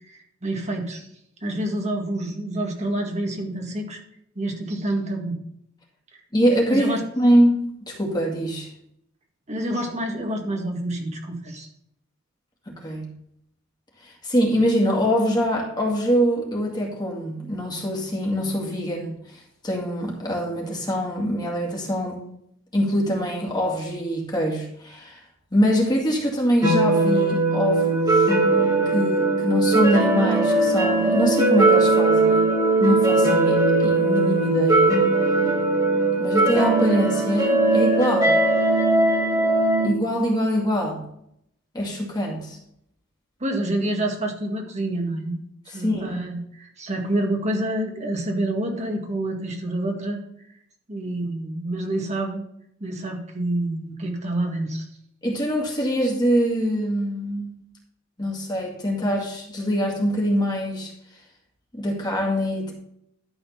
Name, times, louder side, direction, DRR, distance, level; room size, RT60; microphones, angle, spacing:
voice 1, 0.1-1.1 1.4-4.0 4.4-5.4 6.4-7.0 9.5-11.7 43.4-50.2 50.9-52.4 52.8-54.9, right 1 dB, 35° right, 2 dB, 1.9 m, -28 dB
voice 2, 6.3-8.7 12.7-13.1 14.0-19.1 19.6-22.2 22.7-25.2 25.5-28.3 28.9-32.4 32.8-35.0 36.2-38.4 39.8-41.0 41.7-42.6 45.7-46.2 55.2-57.5 58.2-60.9 61.7-62.7, equal, 20° left, -1 dB, 2.2 m, -24 dB
sound 1, 26.6-39.9, right 2 dB, 20° right, 2.4 m, -19 dB
12.0 x 4.3 x 5.7 m, 0.73 s
head